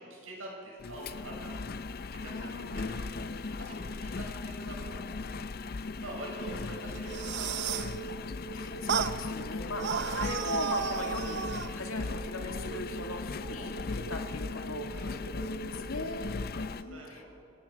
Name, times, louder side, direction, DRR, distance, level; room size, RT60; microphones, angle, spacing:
voice 1, 0.1-1.6 2.2-5.1 6.0-7.9 14.9-15.2 16.5-17.4, right 1 dB, 80° right, -2 dB, 6.8 m, -46 dB
Engine, 0.8-16.8, left 3 dB, 45° left, 0.5 m, -38 dB
voice 2, 2.2-2.9 7.4-7.9 8.5-15.1 15.5-16.3 16.8-17.2, left 3 dB, 85° left, 3 dB, 2.3 m, -40 dB
sound 1, 6.2-16.2, right 4 dB, 10° left, 4.4 m, -44 dB
sound 2, 7.0-8.0 8.9-9.2 9.8-11.7, right 7 dB, 55° right, 0.6 m, -32 dB
25.5 x 16.5 x 6.1 m, 2.5 s
head